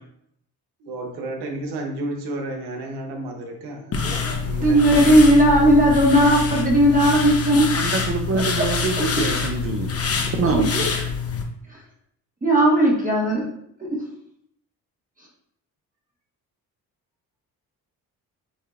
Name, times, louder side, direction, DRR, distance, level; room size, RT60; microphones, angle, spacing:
voice 1, 0.8-4.8, right 2 dB, 90° right, 2 dB, 1.0 m, -32 dB
sound 1, 3.9-11.4, left 5 dB, 40° left, 0.8 m, -25 dB
voice 2, 4.6-7.7 8.3-8.7 9.0-9.4 10.4-10.9 11.7-11.8 12.4-13.5 13.8-13.9, right 1 dB, 20° right, -3 dB, 1.3 m, -17 dB
voice 3, 7.7-9.9 10.4-10.7, right 4 dB, 35° right, 4 dB, 0.5 m, -25 dB
7.1 x 2.8 x 2.4 m, 0.71 s
cardioid pair, 80°, 38 cm